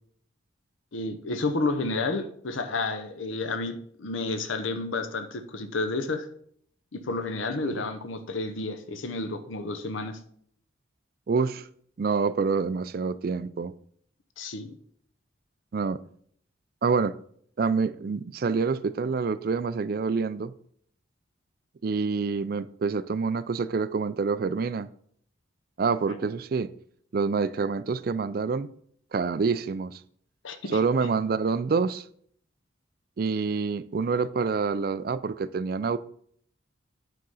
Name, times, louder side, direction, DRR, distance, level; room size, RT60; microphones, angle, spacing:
voice 1, 0.9-6.3 6.9-10.2 14.4-14.7 26.1-26.2 30.4-30.8, left 3 dB, 85° left, 0.8 m, -31 dB
voice 2, 11.3-11.7 12.0-13.7 15.7-16.0 16.8-17.2 17.6-20.5 21.8-24.9 25.8-26.7 27.1-28.7 29.1-30.0 30.7-32.0 33.2-36.0, right 5 dB, 50° right, 0.3 m, -27 dB
9.1 x 3.8 x 5.5 m
head